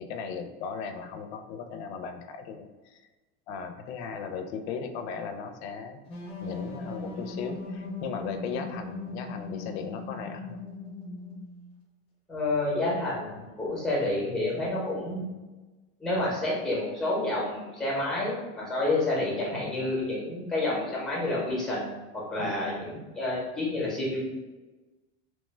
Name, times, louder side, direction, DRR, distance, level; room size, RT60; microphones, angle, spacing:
voice 1, 0.0-3.0 3.5-6.0 6.4-10.6 22.4-22.6, left 5 dB, 80° left, 6 dB, 0.5 m, -37 dB
sound 1, 6.1-11.7, left 3 dB, 20° left, 0.4 m, -38 dB
voice 2, 12.3-15.2 16.0-24.2, left 2 dB, ahead, -5 dB, 0.8 m, -29 dB
3.0 x 2.1 x 3.2 m, 1.2 s
cardioid pair, 165°, 32 cm